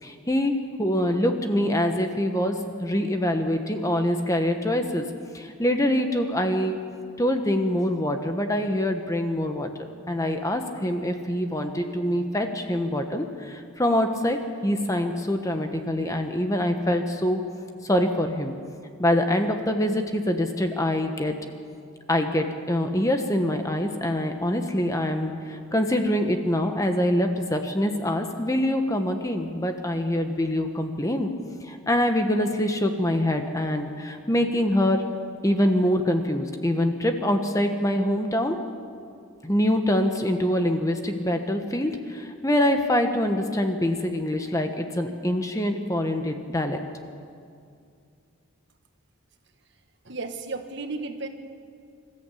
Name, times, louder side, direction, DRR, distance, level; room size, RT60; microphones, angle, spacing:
voice 1, 0.0-5.1 5.3-6.8 7.2-9.7 10.1-17.4 17.8-18.5 19.0-21.3 22.1-31.3 31.6-35.0 35.4-38.6 39.4-46.8, left 1 dB, 15° left, 5 dB, 1.1 m, -25 dB
voice 2, 50.0-51.3, right 3 dB, 55° right, 6 dB, 1.5 m, -33 dB
26.0 x 14.0 x 8.4 m, 2.4 s
head